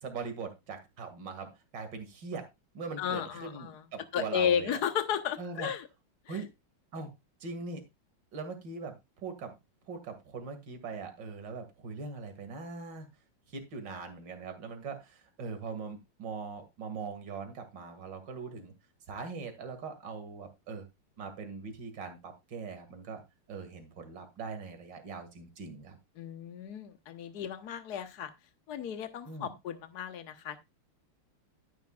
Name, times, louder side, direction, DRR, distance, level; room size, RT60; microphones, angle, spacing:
voice 1, 0.0-2.5 2.7-4.8 5.4-5.7 6.3-6.5 6.9-7.1 7.4-7.8 8.3-9.6 9.9-13.1 13.5-18.7 19.1-20.9 21.2-23.2 23.5-26.0 29.2-29.5, right 5 dB, 60° right, 6 dB, 2.8 m, -41 dB
voice 2, 3.0-3.8 4.1-5.9 26.2-28.3 28.7-30.6, left 8 dB, 55° left, 9 dB, 1.6 m, -33 dB
12.5 x 10.5 x 2.4 m, 0.23 s
omnidirectional pair, 2.3 m